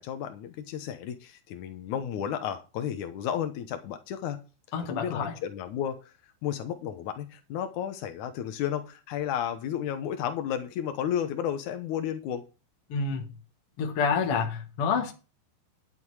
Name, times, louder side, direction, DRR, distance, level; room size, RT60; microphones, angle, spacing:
voice 1, 0.0-4.4 4.8-6.0 6.4-12.4, left 9 dB, 80° left, 1.8 m, -32 dB
voice 2, 4.7-5.3 12.9-13.3 13.8-15.1, left 5 dB, 60° left, 1.6 m, -28 dB
11.0 x 7.7 x 4.8 m
omnidirectional pair, 4.9 m